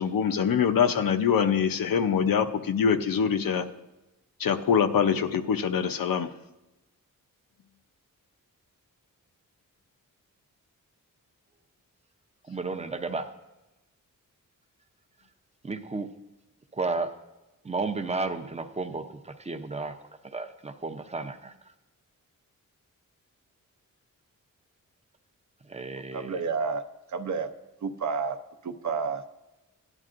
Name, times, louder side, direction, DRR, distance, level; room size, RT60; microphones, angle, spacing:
voice 1, 0.0-3.6 4.4-6.3, left 7 dB, 85° left, 8 dB, 0.7 m, -24 dB
voice 2, 12.4-13.3 15.6-16.1 16.7-17.1 17.6-19.9 20.3-21.5 25.7-26.4, right 3 dB, 20° right, 7 dB, 0.5 m, -33 dB
voice 3, 25.9-27.5 27.8-28.4 28.6-29.2, right 5 dB, 60° right, 8 dB, 0.7 m, -31 dB
17.0 x 11.0 x 2.5 m, 0.99 s
wide cardioid pair, 170°, 33 cm